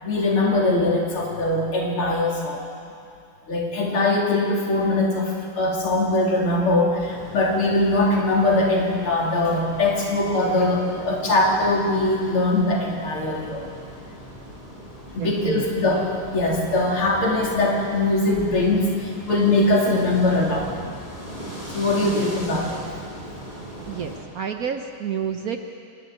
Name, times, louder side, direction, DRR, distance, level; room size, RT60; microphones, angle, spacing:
voice 1, 0.0-2.6 3.5-13.6 15.1-20.7 21.7-22.8, left 2 dB, 90° left, -2 dB, 3.7 m, -21 dB
sound 1, 7.0-24.2, right 1 dB, 20° left, 3.2 m, -39 dB
voice 2, 15.2-15.7 22.1-22.3 23.8-25.6, right 7 dB, 60° right, 5 dB, 1.0 m, -29 dB
25.0 x 11.0 x 9.6 m, 2.5 s
omnidirectional pair, 2.3 m